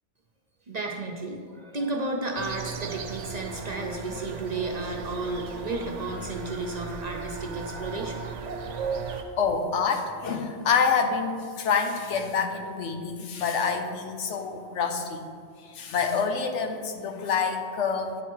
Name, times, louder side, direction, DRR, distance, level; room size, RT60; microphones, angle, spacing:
voice 1, 0.7-8.4, right 2 dB, 45° right, 0 dB, 0.6 m, -33 dB
sound 1, 2.4-9.2, right 5 dB, 80° right, 1.0 m, -36 dB
voice 2, 9.4-15.2 15.6-18.2, left 5 dB, 75° left, 5 dB, 1.1 m, -27 dB
9.8 x 4.2 x 4.6 m, 2.1 s
omnidirectional pair, 1.2 m